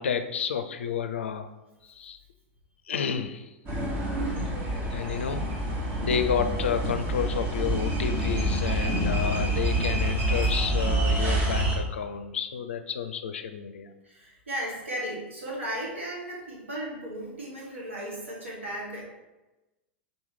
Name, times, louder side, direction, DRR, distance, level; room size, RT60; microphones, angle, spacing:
voice 1, 0.0-1.5 1.8-2.2 2.9-3.5 4.4-4.6 4.9-5.4 6.0-13.9, left 7 dB, 75° left, 8 dB, 0.4 m, -31 dB
sound 1, 3.7-11.8, right 1 dB, 35° right, 1.2 m, -27 dB
voice 2, 14.0-19.0, right 1 dB, 85° right, -3 dB, 1.3 m, -35 dB
3.8 x 3.0 x 3.7 m, 1.1 s
figure-of-eight pair, 95°, 7 cm